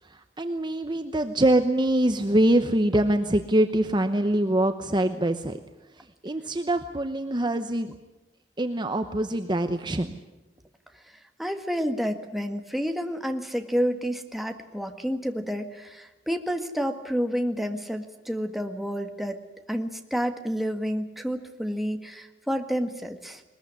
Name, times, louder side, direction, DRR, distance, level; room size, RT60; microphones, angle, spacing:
voice 1, 0.0-5.6 6.0-7.9 8.6-10.1, right 1 dB, 25° right, 8 dB, 0.9 m, -24 dB
voice 2, 11.4-19.4 19.7-23.4, equal, ahead, 5 dB, 1.7 m, -29 dB
21.5 x 21.0 x 9.9 m, 1.0 s
head